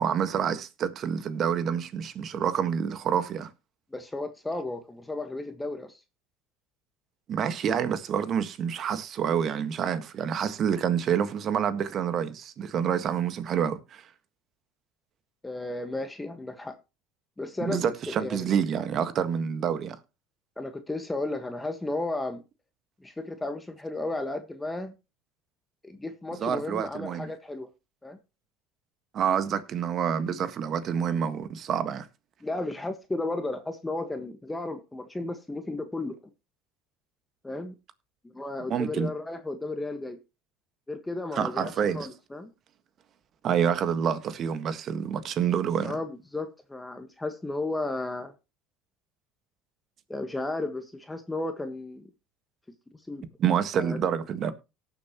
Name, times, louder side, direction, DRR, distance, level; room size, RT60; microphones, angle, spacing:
voice 1, 0.0-3.5 7.3-14.1 17.6-20.0 26.4-27.3 29.1-32.1 38.7-39.1 41.3-42.1 43.4-46.0 53.4-54.5, right 8 dB, 50° right, 1.6 m, -27 dB
voice 2, 3.9-6.0 15.4-16.7 17.4-17.8 18.2-18.5 20.6-22.4 23.0-24.9 25.8-27.7 28.0-28.2 32.4-36.2 37.4-37.7 38.2-40.2 40.9-42.5 45.8-48.3 50.1-52.1 53.1-53.2 53.8-54.0, left 2 dB, 10° left, 1.5 m, -34 dB
18.5 x 7.3 x 3.0 m
hypercardioid pair, 85°, 0 cm